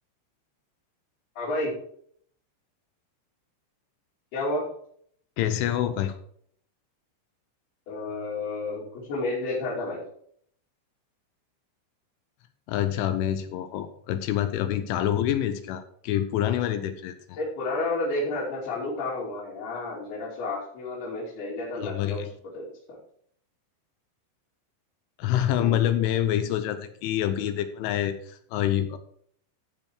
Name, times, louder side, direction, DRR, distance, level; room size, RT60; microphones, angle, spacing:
voice 1, 1.4-1.8 4.3-4.7 7.9-10.0 17.4-22.2 22.5-23.0 25.5-25.8, left 2 dB, 55° left, -7 dB, 4.6 m, -31 dB
voice 2, 5.4-6.2 12.7-17.4 21.8-22.3 25.2-29.0, left 11 dB, 80° left, 9 dB, 3.2 m, -26 dB
15.0 x 5.7 x 4.8 m, 0.63 s
omnidirectional pair, 5.7 m